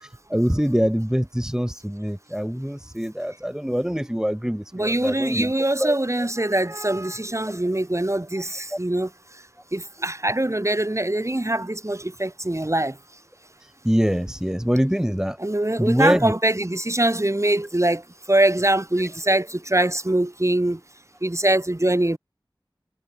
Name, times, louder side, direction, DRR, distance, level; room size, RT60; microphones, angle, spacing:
voice 1, 0.3-5.5 5.8-5.9 8.7-8.8 13.8-15.4 15.8-16.4, equal, 5° right, 3.3 m, -24 dB
voice 2, 4.7-9.1 9.7-13.0 15.4-18.0 18.3-20.8 21.2-22.2, right 1 dB, 35° right, 7.4 m, -23 dB
wide cardioid pair, 50°, 9 cm